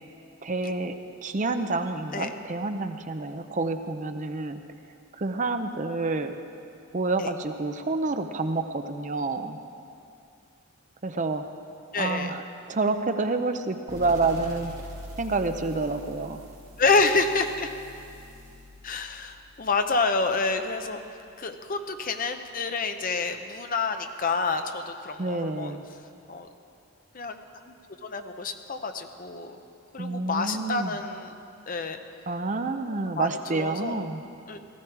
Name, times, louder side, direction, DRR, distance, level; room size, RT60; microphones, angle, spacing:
voice 1, 0.4-0.9 1.2-4.6 5.2-6.4 6.9-9.6 11.0-11.4 12.0-14.9 15.2-16.4 25.2-25.9 30.0-31.0 32.3-34.2, right 3 dB, 35° right, 8 dB, 0.6 m, -28 dB
voice 2, 11.9-12.3 16.8-17.7 18.8-21.0 21.4-25.8 26.3-26.5 27.1-27.4 27.7-27.8 28.0-29.6 29.9-31.3 31.7-32.0 32.8-34.0 34.5-34.6, left 4 dB, 40° left, 7 dB, 0.7 m, -28 dB
sound 1, 13.9-21.1, equal, 20° right, 4.2 m, -45 dB
16.5 x 15.0 x 4.7 m, 2.5 s
head